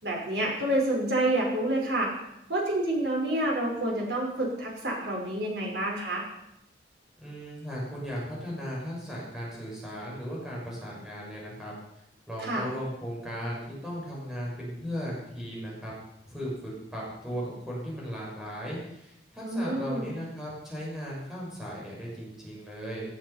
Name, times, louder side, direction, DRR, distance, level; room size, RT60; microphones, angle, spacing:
voice 1, 0.0-2.1 2.5-6.2 12.4-12.6 19.4-20.1, right 1 dB, 65° right, -1 dB, 5.2 m, -28 dB
voice 2, 7.2-11.7 12.3-15.9 16.3-23.0, equal, 5° right, -5 dB, 6.4 m, -37 dB
17.0 x 12.0 x 5.7 m, 0.83 s
head